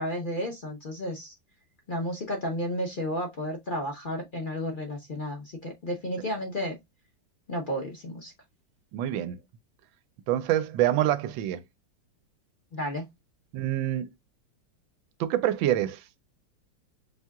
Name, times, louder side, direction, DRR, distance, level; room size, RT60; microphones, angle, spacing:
voice 1, 0.0-1.3 1.9-6.8 7.5-8.3 12.7-13.0, equal, 45° left, 0.6 m, -32 dB
voice 2, 8.9-9.4 10.3-11.6 13.5-14.1 15.2-16.0, right 12 dB, 85° right, 1.3 m, -26 dB
5.9 x 2.7 x 2.3 m
omnidirectional pair, 2.1 m